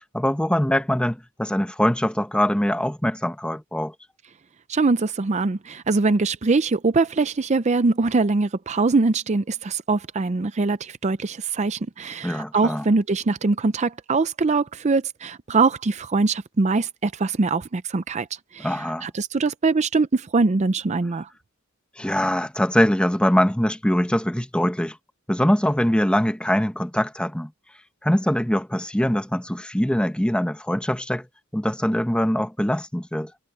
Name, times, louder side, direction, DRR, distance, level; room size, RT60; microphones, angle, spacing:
voice 1, 0.1-3.9 12.2-12.8 18.6-19.1 22.0-25.0 25.3-27.5 28.0-31.3 31.5-33.3, equal, 5° left, 1.0 m, -23 dB
voice 2, 4.7-18.3 18.5-21.3, right 3 dB, 35° right, 0.5 m, -22 dB
head